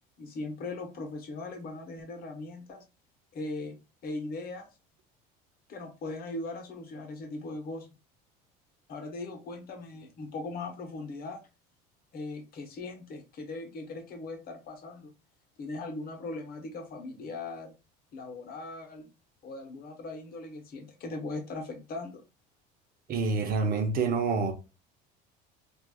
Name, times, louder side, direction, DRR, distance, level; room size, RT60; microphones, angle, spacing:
voice 1, 0.2-2.9 3.3-4.7 5.7-7.9 8.9-11.4 12.1-15.1 15.6-17.8 18.1-19.1 19.4-22.2, left 2 dB, 45° left, 1.0 m, -39 dB
voice 2, 23.1-24.5, right 4 dB, 45° right, 0.8 m, -27 dB
3.3 x 2.5 x 2.3 m
supercardioid pair, 105°, 21 cm